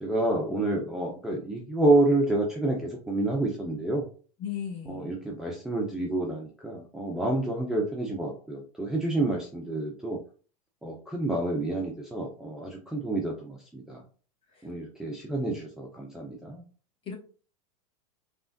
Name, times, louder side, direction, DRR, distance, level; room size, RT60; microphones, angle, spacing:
voice 1, 0.0-4.0 4.9-10.2 10.8-14.0 14.6-16.6, right 2 dB, 5° right, -2 dB, 0.6 m, -28 dB
voice 2, 4.4-5.1 14.5-14.7 17.0-17.1, left 8 dB, 30° left, 0 dB, 1.2 m, -36 dB
3.3 x 2.4 x 2.5 m, 0.39 s
hypercardioid pair, 105°, 19 cm